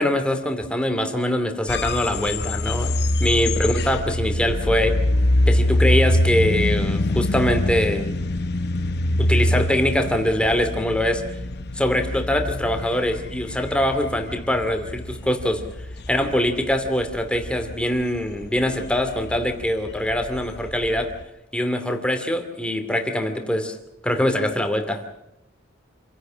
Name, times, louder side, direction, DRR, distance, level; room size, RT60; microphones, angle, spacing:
voice 1, 0.0-5.0 5.5-8.2 9.2-11.2 11.8-15.6 16.1-21.1 21.5-23.8 24.0-25.0, left 1 dB, 5° left, 6 dB, 2.6 m, -23 dB
sound 1, 1.7-21.2, left 1 dB, 55° left, 1.1 m, -24 dB
27.5 x 16.5 x 6.4 m, 0.87 s
head